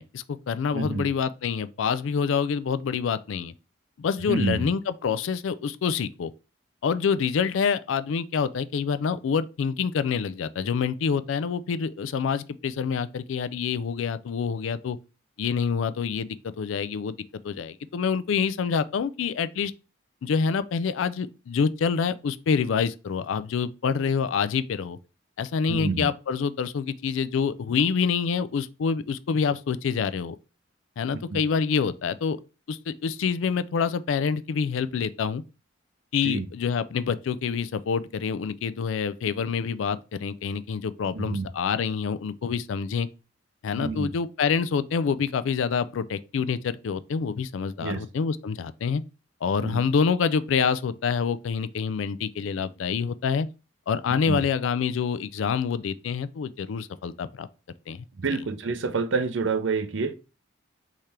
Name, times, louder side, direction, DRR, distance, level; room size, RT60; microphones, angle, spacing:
voice 1, 0.0-3.5 4.0-6.3 6.8-15.0 15.4-16.3 16.6-17.2 17.4-19.7 20.2-25.0 25.4-30.4 31.0-32.4 32.7-35.4 36.1-43.1 43.6-49.0 49.4-53.5 53.9-57.5 57.9-58.0, left 6 dB, 75° left, 0.4 m, -27 dB
voice 2, 0.7-1.1 4.3-4.7 25.7-26.1 31.3-31.4 36.2-36.5 41.1-41.5 43.8-44.1 47.8-48.0 49.6-49.8 54.2-54.4 58.2-60.1, right 4 dB, 70° right, 0.6 m, -28 dB
3.6 x 3.3 x 4.2 m
head